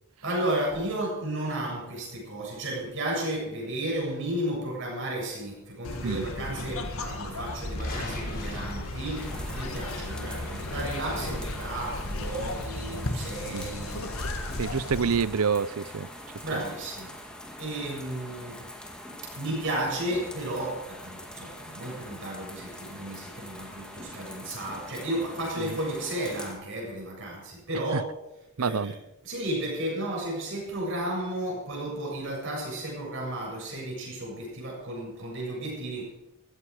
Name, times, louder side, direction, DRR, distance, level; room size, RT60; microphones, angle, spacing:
voice 1, 0.2-14.3 16.4-17.2 17.6-18.6 19.3-28.1 28.6-36.1, right 1 dB, 55° right, -2 dB, 7.5 m, -33 dB
sound 1, 5.8-15.2, left 1 dB, 70° left, 1.8 m, -35 dB
sound 2, 7.5-10.0 10.5-11.7, left 1 dB, 40° left, 3.9 m, -38 dB
sound 3, 9.2-26.5, left 1 dB, 5° left, 2.0 m, -44 dB
voice 2, 14.6-16.1 25.6-25.7 27.9-28.0 28.6-28.9, right 6 dB, 80° right, 18 dB, 0.6 m, -27 dB
15.0 x 14.5 x 5.0 m, 0.91 s
head